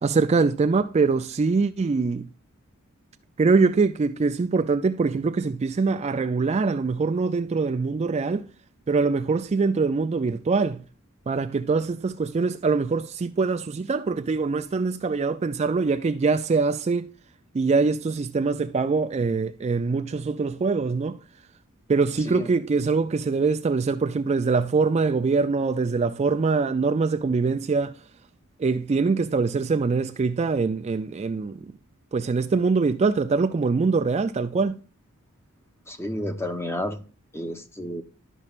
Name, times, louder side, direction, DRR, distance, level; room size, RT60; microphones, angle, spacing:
voice 1, 0.0-2.3 3.4-8.5 8.9-10.8 11.3-17.1 17.5-21.2 21.9-28.0 28.6-31.7 32.1-34.8, right 4 dB, 30° right, 0.3 m, -23 dB
voice 2, 35.9-37.0 37.3-38.0, equal, 10° left, 0.8 m, -31 dB
12.5 x 5.4 x 2.4 m
head